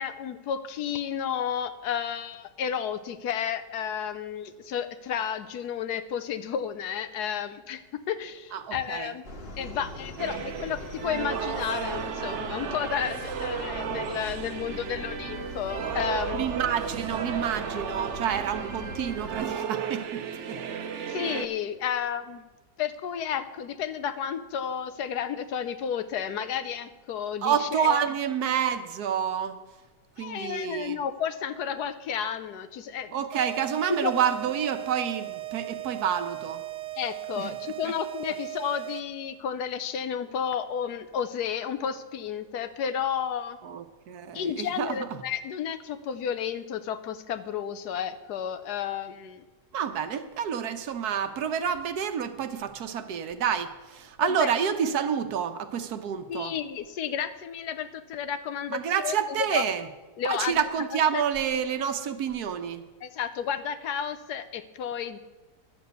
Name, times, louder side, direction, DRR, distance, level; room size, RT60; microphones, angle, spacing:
voice 1, 0.0-7.8 8.1-9.2 9.6-16.5 21.1-22.5 22.8-28.0 30.2-33.2 34.0-34.1 37.0-43.6 44.3-49.4 54.2-54.5 56.3-59.1 59.5-59.6 60.2-60.6 61.1-61.2 63.0-65.2, left 8 dB, 75° left, 12 dB, 1.3 m, -32 dB
voice 2, 8.5-9.1 16.3-20.6 27.4-29.6 30.2-31.0 33.1-36.6 37.4-37.5 37.8-37.9 43.6-45.2 49.7-56.6 58.7-59.9 60.2-62.8, right 8 dB, 70° right, 9 dB, 1.3 m, -29 dB
sound 1, 9.2-19.4, equal, 40° left, 1.5 m, -41 dB
sound 2, 10.2-21.5, right 7 dB, 55° right, 1.0 m, -34 dB
sound 3, 33.3-39.3, right 19 dB, 90° right, 1.2 m, -37 dB
11.5 x 6.9 x 8.1 m, 1.2 s
omnidirectional pair, 1.8 m